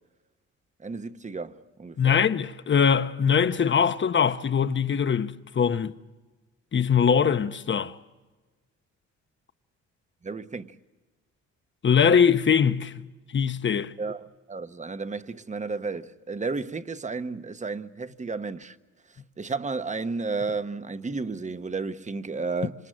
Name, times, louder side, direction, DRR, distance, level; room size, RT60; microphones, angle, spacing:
voice 1, 0.8-2.2 10.2-10.8 14.0-18.7 19.4-22.7, right 4 dB, 25° right, 1.1 m, -32 dB
voice 2, 2.0-5.9 6.7-8.0 11.8-12.9 13.3-13.9, left 7 dB, 40° left, 1.1 m, -22 dB
26.5 x 26.0 x 7.6 m
cardioid pair, 90°, 30 cm